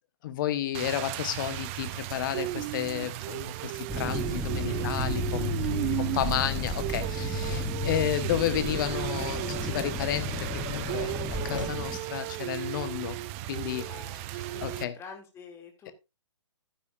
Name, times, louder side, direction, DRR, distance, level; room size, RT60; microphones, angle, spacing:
voice 1, 0.2-13.2 13.5-13.9 14.6-15.0, left 11 dB, 40° left, 1.2 m, -32 dB
Rain, 0.7-14.8, right 16 dB, 25° right, 0.5 m, -35 dB
sound 1, 3.9-12.0, equal, 5° right, 1.1 m, -33 dB
Tap, 4.3-11.8, left 5 dB, 75° left, 1.6 m, -43 dB
voice 2, 5.5-6.3 7.5-7.9 13.8-15.9, left 6 dB, 15° left, 2.5 m, -47 dB
12.0 x 9.8 x 2.5 m
figure-of-eight pair, 130°, 16 cm